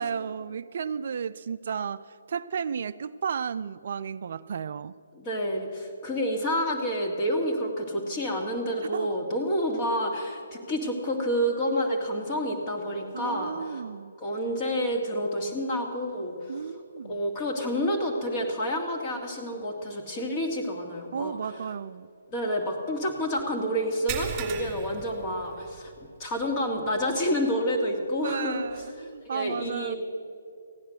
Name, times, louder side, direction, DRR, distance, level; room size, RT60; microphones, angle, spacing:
voice 1, 0.0-5.0 8.8-9.4 13.1-14.2 16.5-17.2 21.1-22.1 28.2-30.0, right 7 dB, 55° right, 15 dB, 0.3 m, -33 dB
voice 2, 5.1-13.8 14.2-16.6 17.0-21.4 22.3-25.9 26.2-28.9 29.3-30.0, equal, 30° left, 1 dB, 2.1 m, -29 dB
sound 1, 24.1-26.0 26.3-26.5 27.0-27.1 28.8-28.9, right 9 dB, 25° right, 2.1 m, -36 dB
15.5 x 10.0 x 6.4 m, 2.4 s
figure-of-eight pair, 135°, 0 cm